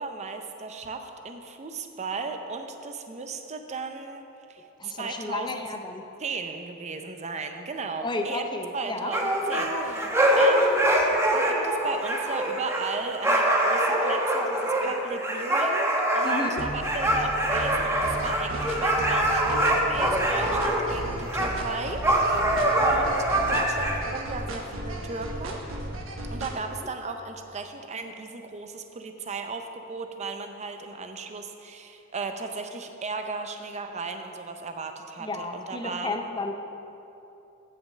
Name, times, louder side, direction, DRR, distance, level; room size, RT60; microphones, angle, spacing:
voice 1, 0.0-4.2 4.5-5.6 6.2-8.4 8.7-10.1 10.4-10.9 11.3-22.0 22.8-25.6 26.3-36.2, right 4 dB, 35° right, 6 dB, 0.6 m, -35 dB
voice 2, 4.8-6.0 8.0-9.1 16.2-16.6 26.8-26.9 35.2-36.5, left 2 dB, 20° left, 5 dB, 0.5 m, -32 dB
sound 1, 9.1-21.0 21.3-21.5 22.0-24.0, right 1 dB, 15° right, 0.9 m, -24 dB
sound 2, 16.6-26.5, right 1 dB, 70° right, 1.2 m, -35 dB
7.6 x 6.4 x 7.3 m, 2.9 s
head